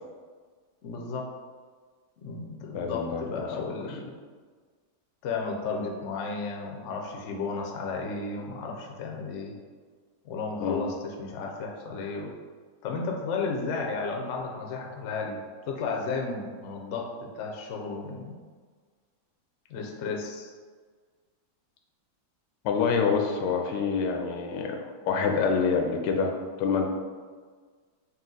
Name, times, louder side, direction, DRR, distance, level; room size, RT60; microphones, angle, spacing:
voice 1, 0.8-1.3 2.2-4.2 5.2-9.5 10.2-12.3 12.8-15.4 15.7-18.4 19.7-20.5, left 4 dB, 65° left, 1 dB, 0.7 m, -33 dB
voice 2, 2.7-3.5 10.6-10.8 22.6-26.9, left 5 dB, 90° left, 3 dB, 1.2 m, -27 dB
4.2 x 2.4 x 3.8 m, 1.5 s
omnidirectional pair, 1.8 m